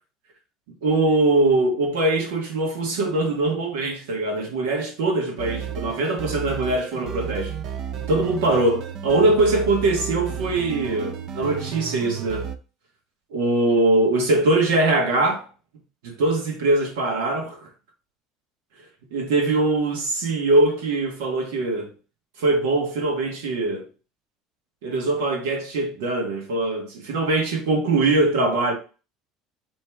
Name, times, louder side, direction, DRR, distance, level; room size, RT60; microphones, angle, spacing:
voice 1, 0.8-7.5 8.1-12.5 13.3-15.4 16.0-17.7 19.1-21.9 22.4-23.8 24.8-28.7, right 2 dB, 85° right, 1.4 m, -22 dB
sound 1, 5.4-12.6, right 8 dB, 60° right, 0.6 m, -32 dB
4.6 x 3.1 x 3.4 m
supercardioid pair, 100°, 0 cm